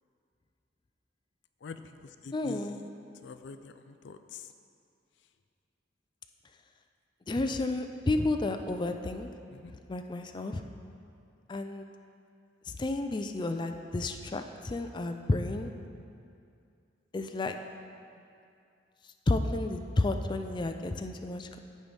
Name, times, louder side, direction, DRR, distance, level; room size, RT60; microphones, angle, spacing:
voice 1, 1.6-2.9 3.2-4.5 9.5-9.7, left 5 dB, 85° left, 9 dB, 0.4 m, -45 dB
voice 2, 2.3-2.8 7.3-9.3 9.9-10.6 11.5-11.9 12.7-15.7 17.1-17.5 19.3-21.6, left 2 dB, 25° left, 6 dB, 0.4 m, -31 dB
15.0 x 5.5 x 3.4 m, 2.4 s
head